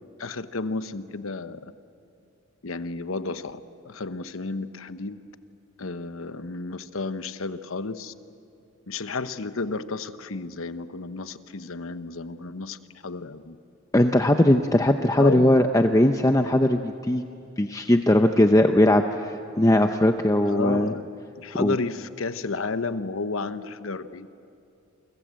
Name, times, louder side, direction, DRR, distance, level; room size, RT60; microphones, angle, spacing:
voice 1, 0.2-1.7 2.6-3.6 3.8-5.2 5.8-8.1 8.9-13.6 15.2-15.7 20.5-21.1 21.4-24.3, left 3 dB, 85° left, 12 dB, 1.0 m, -32 dB
voice 2, 13.9-17.2 17.6-20.9 21.6-21.8, left 1 dB, 15° left, 6 dB, 0.7 m, -19 dB
29.0 x 25.0 x 7.7 m, 2.6 s
head